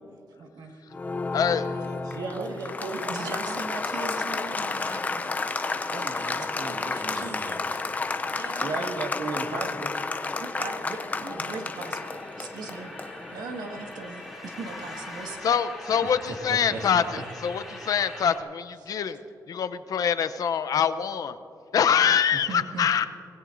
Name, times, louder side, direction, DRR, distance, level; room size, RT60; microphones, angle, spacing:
voice 1, 0.4-0.8 1.6-8.9 10.4-12.9 13.3-15.4 16.0-16.1 18.8-18.9 22.3-23.1, right 4 dB, 90° right, 3 dB, 1.7 m, -40 dB
Applause, 0.9-15.3, left 3 dB, 20° left, 0.5 m, -32 dB
voice 2, 1.3-2.0 15.4-19.2 19.5-21.4 21.7-23.1, left 8 dB, 60° left, 12 dB, 0.6 m, -25 dB
voice 3, 2.0-3.6 5.9-7.3 8.5-9.9 14.8-14.9 16.0-17.3 19.0-19.1, right 3 dB, 70° right, 3 dB, 1.7 m, -36 dB
sound 1, 10.2-18.4, left 1 dB, ahead, 2.8 m, -42 dB
24.5 x 20.0 x 2.6 m, 2.8 s
wide cardioid pair, 180°, 7 cm